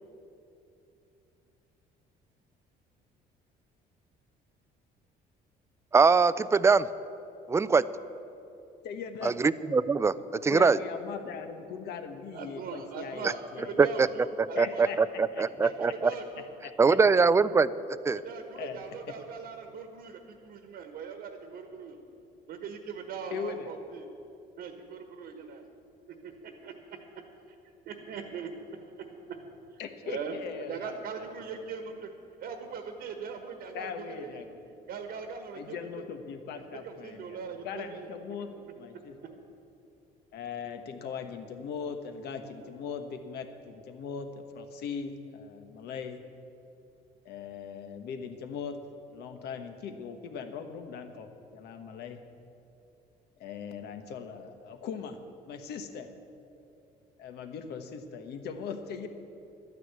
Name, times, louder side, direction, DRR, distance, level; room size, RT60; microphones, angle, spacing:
voice 1, 5.9-6.9 7.5-7.8 9.2-10.1 10.4-10.8 13.8-14.1 14.6-16.1 16.8-17.7 18.0-18.2, right 4 dB, 15° right, 16 dB, 0.4 m, -22 dB
voice 2, 8.8-9.3 10.3-13.9 14.5-15.0 15.3-15.7 16.3-17.0 18.5-19.0 23.3-23.7 29.8-31.3 33.7-34.6 35.5-37.4 37.6-39.4 40.3-46.2 47.2-48.8 49.1-52.2 53.4-55.2 55.5-56.1 57.2-59.1, left 6 dB, 75° left, 7 dB, 1.2 m, -40 dB
voice 3, 12.3-14.9 15.6-16.4 18.1-22.0 22.5-24.1 24.6-25.6 26.1-27.3 27.8-32.1 32.4-34.4 34.9-36.0 36.5-38.1 38.9-39.5, right 5 dB, 70° right, 5 dB, 1.4 m, -41 dB
12.0 x 9.6 x 8.2 m, 2.8 s
cardioid pair, 110°, 17 cm